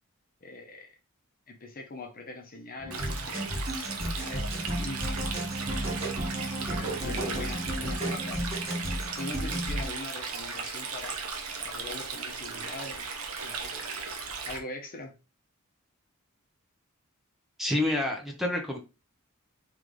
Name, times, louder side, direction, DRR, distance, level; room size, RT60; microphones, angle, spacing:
voice 1, 0.4-0.9 1.5-3.5 3.7-5.1 5.6-5.7 6.7-8.4 9.2-11.2 11.6-13.1 13.4-13.9 14.5-15.1, left 2 dB, 45° left, 0.9 m, -42 dB
sound 1, 2.8-9.9, right 1 dB, 30° right, 1.5 m, -33 dB
Stream, 2.9-14.6, right 5 dB, 80° right, 0.9 m, -37 dB
voice 2, 17.6-18.8, left 1 dB, ahead, 0.8 m, -28 dB
3.3 x 3.3 x 3.8 m
head